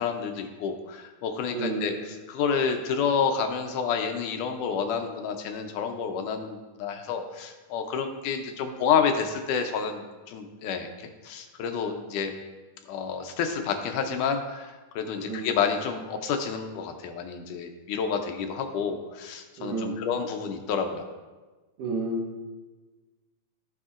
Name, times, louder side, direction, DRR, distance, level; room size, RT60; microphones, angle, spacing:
voice 1, 0.0-12.3 12.9-21.0, left 6 dB, 75° left, 5 dB, 2.1 m, -29 dB
voice 2, 1.5-2.0 15.2-15.5 19.6-20.0 21.8-22.4, right 2 dB, 75° right, 0 dB, 2.8 m, -31 dB
14.5 x 6.4 x 2.5 m, 1.3 s
omnidirectional pair, 3.8 m